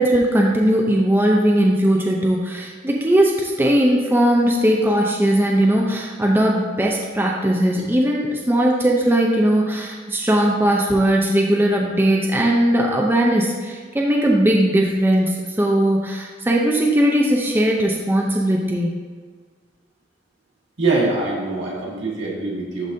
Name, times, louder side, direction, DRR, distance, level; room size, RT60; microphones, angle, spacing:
voice 1, 0.0-18.9, right 1 dB, 10° right, -2 dB, 0.5 m, -18 dB
voice 2, 20.8-22.9, right 3 dB, 75° right, -4 dB, 1.8 m, -23 dB
11.5 x 4.0 x 2.7 m, 1.5 s
head